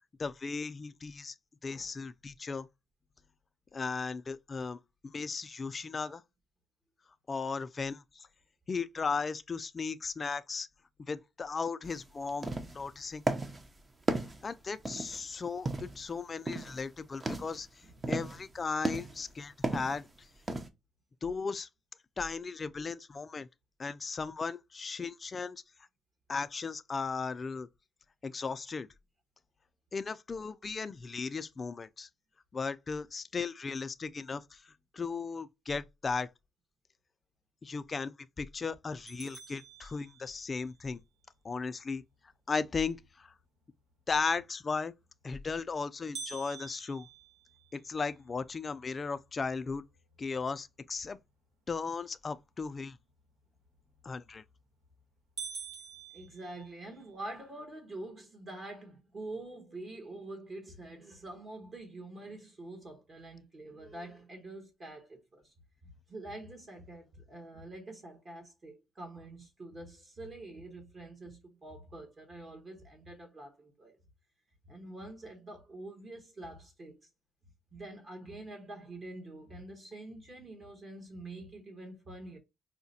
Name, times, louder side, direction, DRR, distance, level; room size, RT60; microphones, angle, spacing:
voice 1, 0.2-1.3 1.6-2.7 3.7-6.2 7.3-8.3 8.7-10.7 11.1-13.2 14.4-17.7 18.1-20.1 21.2-21.7 22.2-23.5 23.8-25.6 26.3-27.7 28.2-28.9 29.9-32.1 32.5-34.6 34.9-36.3 37.6-41.0 41.4-42.0 42.5-43.3 44.1-44.9 45.2-47.1 47.7-49.8 50.2-51.2 51.7-53.0 54.0-54.4, left 4 dB, 35° left, 0.3 m, -36 dB
sound 1, 11.8-12.0 12.3-12.9 13.3-13.7 14.1-15.2 15.7-16.1 16.5-16.8 17.1-17.6 18.0-18.4 18.8-19.3 19.6-20.0 20.5-20.7, right 2 dB, 25° right, 0.6 m, -34 dB
sound 2, 39.1-40.6 46.1-48.3 48.8-48.9 49.4-49.5 50.2-50.5 54.1-54.5 54.9-55.0 55.4-57.1, right 5 dB, 90° right, 1.2 m, -46 dB
voice 2, 56.1-65.5 65.8-74.0 74.7-77.1 77.7-82.4, right 2 dB, 40° right, 1.2 m, -46 dB
4.7 x 2.1 x 2.7 m
cardioid pair, 90°, 0 cm